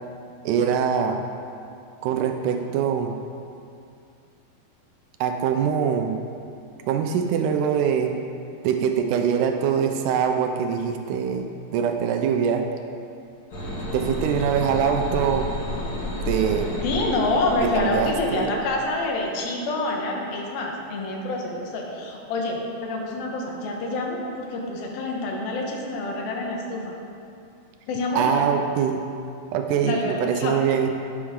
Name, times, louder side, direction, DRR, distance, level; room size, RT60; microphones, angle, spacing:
voice 1, 0.5-1.2 2.0-3.2 5.2-6.2 6.9-8.2 8.6-12.7 13.9-15.5 16.3-16.7 17.6-18.5 28.1-29.0 29.5-30.9, right 7 dB, 80° right, 5 dB, 1.9 m, -23 dB
sound 1, 13.5-18.8, left 1 dB, 45° left, 1.3 m, -31 dB
voice 2, 16.8-27.0 27.9-28.5 29.8-30.6, left 2 dB, 80° left, 0 dB, 3.0 m, -27 dB
11.0 x 10.0 x 3.7 m, 2.5 s
omnidirectional pair, 4.2 m